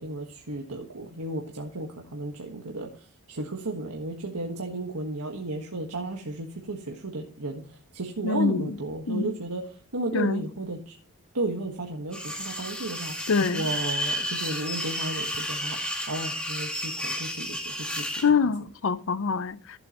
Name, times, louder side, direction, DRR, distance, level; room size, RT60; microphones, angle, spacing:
voice 1, 0.0-2.9 3.3-7.6 7.9-9.6 9.9-10.9 11.3-13.1 13.5-15.8 16.1-18.0, right 2 dB, 80° right, 1.5 m, -33 dB
voice 2, 8.2-8.8 9.1-9.3 10.1-10.5 13.3-13.7 18.2-19.6, left 5 dB, 60° left, 0.6 m, -25 dB
sound 1, 12.1-18.3, equal, 5° left, 2.3 m, -32 dB
14.5 x 7.8 x 3.0 m
head